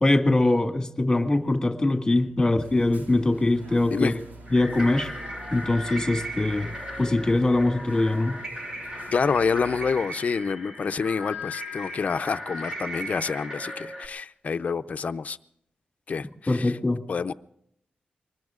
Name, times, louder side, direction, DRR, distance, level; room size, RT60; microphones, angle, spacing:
voice 1, 0.0-4.1 4.5-5.1 5.5-8.4 16.5-17.0, left 2 dB, 15° left, 1.9 m, -23 dB
sound 1, 2.6-9.9, right 1 dB, 65° right, 3.0 m, -45 dB
sound 2, 4.5-14.1, equal, 20° right, 1.9 m, -37 dB
voice 2, 9.1-15.4 16.1-16.7 17.1-17.3, left 5 dB, 50° left, 0.6 m, -27 dB
24.0 x 20.5 x 2.5 m
wide cardioid pair, 145°, 3 cm